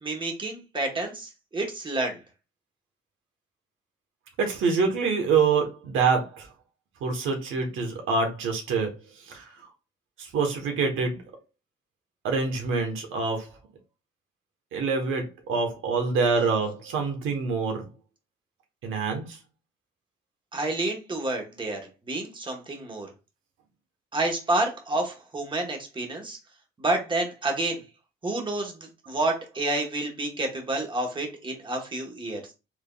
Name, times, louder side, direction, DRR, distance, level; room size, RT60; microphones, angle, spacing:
voice 1, 0.0-2.2 20.5-21.8 22.1-23.1 24.1-26.4 26.8-27.8 28.2-32.5, right 2 dB, 25° right, 1.2 m, -29 dB
voice 2, 4.4-6.5 7.0-9.5 10.2-11.2 12.2-13.6 14.7-17.9 18.8-19.4, right 4 dB, 85° right, 1.2 m, -26 dB
4.5 x 3.5 x 2.3 m
cardioid pair, 90°, 20 cm